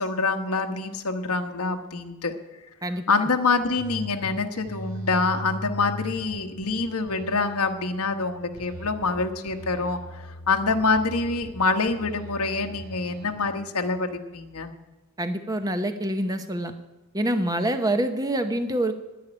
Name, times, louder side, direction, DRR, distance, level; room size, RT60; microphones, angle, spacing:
voice 1, 0.0-2.3 3.1-14.7, left 3 dB, 80° left, 7 dB, 1.2 m, -26 dB
sound 1, 3.8-4.3 4.7-6.7 7.1-9.2 9.5-11.5 11.9-13.3, equal, 65° right, 3.3 m, -39 dB
voice 2, 15.2-16.7 17.1-18.9, right 1 dB, 15° right, 8 dB, 0.8 m, -26 dB
10.5 x 9.7 x 9.9 m, 1.1 s
head